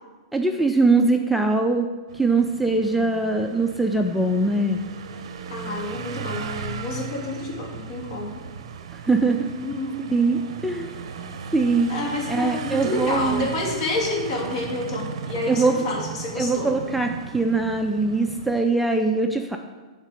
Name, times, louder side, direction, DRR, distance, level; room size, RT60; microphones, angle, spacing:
voice 1, 0.3-1.9 2.1-4.8 9.1-9.5 10.1-10.9 11.5-11.9 12.3-13.5 15.5-15.7 16.4-19.6, right 3 dB, ahead, 3 dB, 0.4 m, -22 dB
sound 1, 2.1-18.6, right 6 dB, 65° right, 0.7 m, -36 dB
voice 2, 5.5-8.4 9.5-10.2 11.2-11.3 11.9-16.7, left 2 dB, 55° left, -1 dB, 2.4 m, -29 dB
8.0 x 3.8 x 6.7 m, 1.3 s
hypercardioid pair, 135°, 3 cm